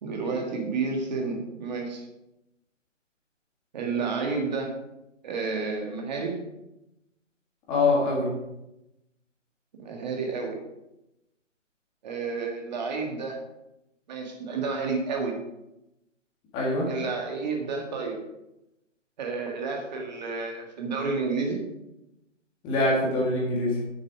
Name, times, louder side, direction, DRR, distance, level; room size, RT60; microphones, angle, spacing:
voice 1, 0.0-2.0 3.7-4.7 5.2-6.4 9.8-10.6 12.0-13.4 14.1-15.4 16.9-18.2 19.2-21.6, right 4 dB, 35° right, 1 dB, 1.8 m, -30 dB
voice 2, 7.7-8.3 16.5-16.9 22.6-23.7, left 2 dB, 15° left, -3 dB, 1.7 m, -24 dB
8.3 x 7.0 x 4.9 m, 0.91 s
figure-of-eight pair, 150°, 38 cm